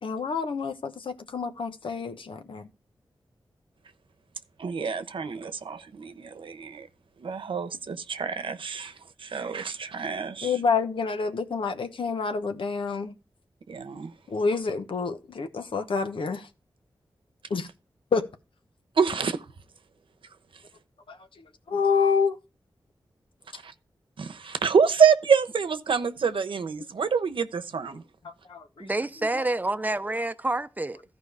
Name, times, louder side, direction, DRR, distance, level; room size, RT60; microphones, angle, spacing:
voice 1, 0.0-2.7 10.4-13.1 14.3-16.5 17.5-17.7 18.1-18.3 21.1-21.2 21.7-22.4 28.2-28.9 29.3-29.4, left 5 dB, 80° left, 1.1 m, -28 dB
voice 2, 4.6-6.9 7.2-8.9 9.2-10.6 13.7-14.1 19.0-19.4 23.5-23.7 24.2-28.0, right 6 dB, 85° right, 1.0 m, -26 dB
voice 3, 28.8-31.0, right 2 dB, 20° right, 0.7 m, -28 dB
14.5 x 5.0 x 4.9 m
wide cardioid pair, 80°, 9 cm